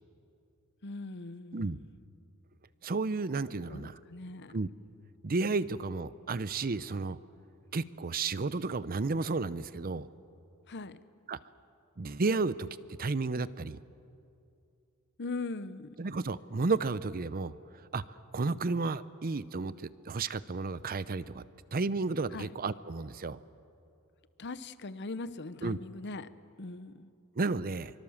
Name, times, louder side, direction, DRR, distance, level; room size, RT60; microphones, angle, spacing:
voice 1, 0.8-1.9 3.7-4.5 10.7-11.0 15.2-16.0 22.3-22.5 24.4-26.3 26.6-27.1, left 3 dB, 50° left, 14 dB, 0.8 m, -40 dB
voice 2, 2.8-3.9 4.5-4.7 5.2-7.2 7.7-10.1 11.3-11.4 12.0-12.7 13.0-13.8 16.0-21.4 21.7-23.4 25.6-25.8 27.4-27.9, right 3 dB, 40° right, 16 dB, 0.6 m, -32 dB
24.5 x 24.0 x 7.2 m, 2.7 s
head